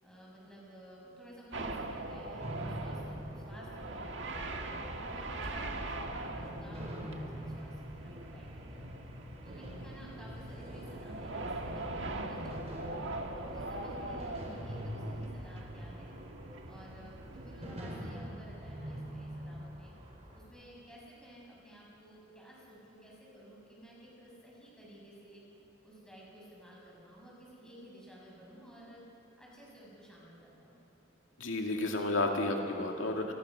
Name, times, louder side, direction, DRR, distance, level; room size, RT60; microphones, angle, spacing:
voice 1, 0.0-4.6 5.0-8.9 9.4-12.9 13.3-16.1 16.6-19.9 20.3-25.4 25.8-29.0 29.4-30.8, equal, 5° left, -5 dB, 7.2 m, -53 dB
sound 1, 1.5-17.8, right 2 dB, 65° right, 1.7 m, -42 dB
sound 2, 2.4-20.4, equal, 35° right, 4.8 m, -45 dB
voice 2, 31.4-33.3, left 2 dB, 85° left, 1 dB, 2.3 m, -31 dB
29.0 x 21.5 x 6.4 m, 2.8 s
head